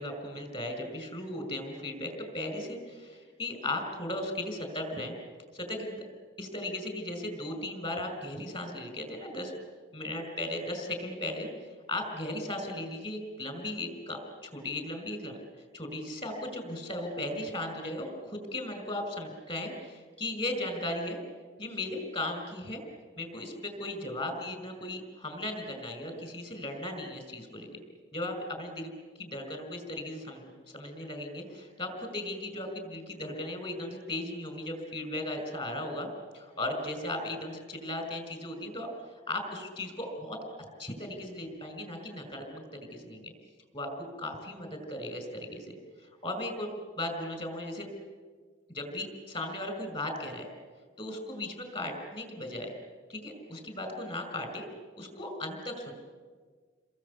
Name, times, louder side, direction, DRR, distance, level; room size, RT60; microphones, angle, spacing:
voice 1, 0.0-5.1 5.5-6.0 6.4-9.5 9.9-15.4 15.7-21.2 21.6-22.8 23.2-27.8 28.1-28.9 29.2-36.1 36.3-43.3 43.7-43.9 44.2-46.7 47.0-47.9 48.7-50.5 51.0-52.7 53.1-54.7 55.0-55.9, left 1 dB, 30° left, 6 dB, 5.6 m, -37 dB
29.5 x 22.0 x 8.4 m, 1.5 s
head